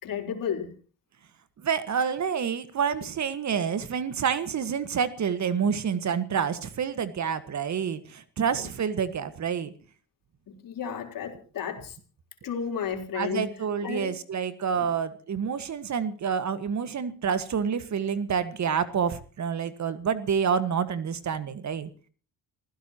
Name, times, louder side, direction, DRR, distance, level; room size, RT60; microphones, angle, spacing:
voice 1, 0.0-0.7 10.6-12.0 12.4-13.4 13.8-14.1 14.8-14.9, left 7 dB, 60° left, 4 dB, 4.1 m, -32 dB
voice 2, 1.6-9.7 13.2-21.9, right 7 dB, 45° right, 13 dB, 1.6 m, -28 dB
28.5 x 16.0 x 3.0 m, 0.39 s
cardioid pair, 85°, 38 cm